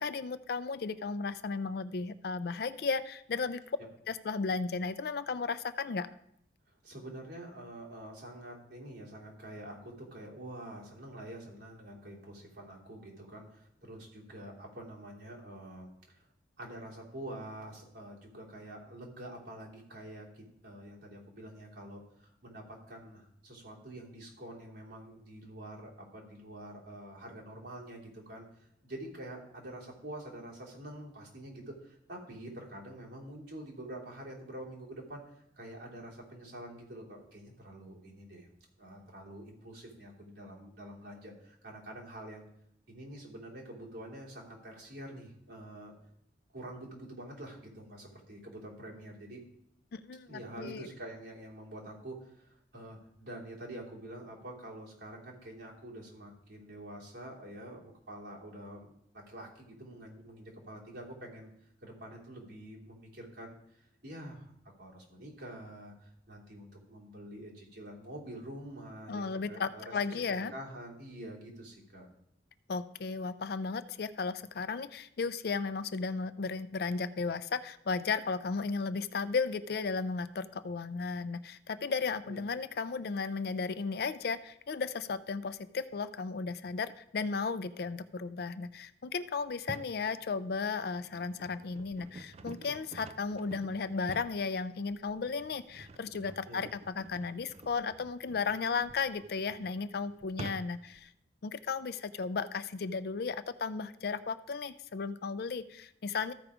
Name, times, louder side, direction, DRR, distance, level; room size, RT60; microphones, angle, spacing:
voice 1, 0.0-3.8 4.1-6.1 49.9-50.9 69.1-70.5 72.7-101.1 101.4-106.3, left 4 dB, 60° left, 13 dB, 0.4 m, -35 dB
voice 2, 6.8-16.2 16.6-38.5 38.8-42.4 42.9-45.9 46.5-49.4 50.3-61.5 61.8-64.5 64.8-72.1 82.3-82.4 96.5-96.6, right 1 dB, 70° right, -4 dB, 3.0 m, -47 dB
sound 1, 89.5-90.0 90.6-101.0, right 2 dB, 35° right, 0.4 m, -49 dB
14.0 x 4.8 x 5.0 m, 0.76 s
head